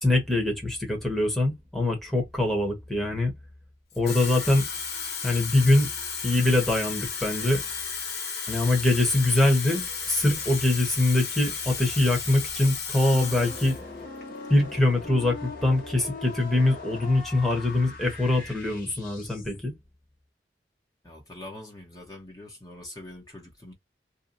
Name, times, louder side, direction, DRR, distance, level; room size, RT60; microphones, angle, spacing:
voice 1, 0.0-3.3 4.0-4.6 5.2-5.9 6.2-7.6 8.5-13.8 14.5-19.7, left 2 dB, ahead, 1.1 m, -23 dB
Water tap faucet / Fill (with liquid), 3.9-13.8 14.2-14.5, left 6 dB, 70° left, 1.4 m, -34 dB
sound 1, 13.0-19.7, left 3 dB, 50° left, 1.3 m, -41 dB
voice 2, 21.0-23.7, left 1 dB, 20° left, 1.0 m, -43 dB
2.8 x 2.2 x 3.8 m
head